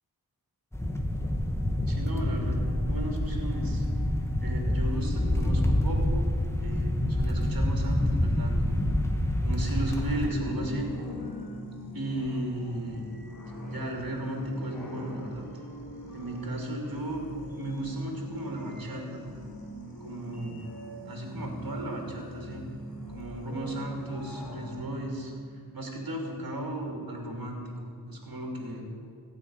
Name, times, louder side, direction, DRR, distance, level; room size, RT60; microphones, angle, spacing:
sound 1, 0.7-10.3, left 1 dB, 5° left, 1.6 m, -27 dB
voice 1, 1.9-2.6 2.8-3.8 4.4-6.2 6.6-8.9 9.4-10.9 11.9-13.0 13.7-15.5 16.1-17.2 17.5-19.2 20.0-20.6 21.0-22.7 23.1-28.9, right 1 dB, 65° right, 0 dB, 3.0 m, -35 dB
sound 2, 9.9-24.8, equal, 70° left, 3.1 m, -43 dB
15.0 x 6.0 x 9.7 m, 2.3 s
wide cardioid pair, 60°, 38 cm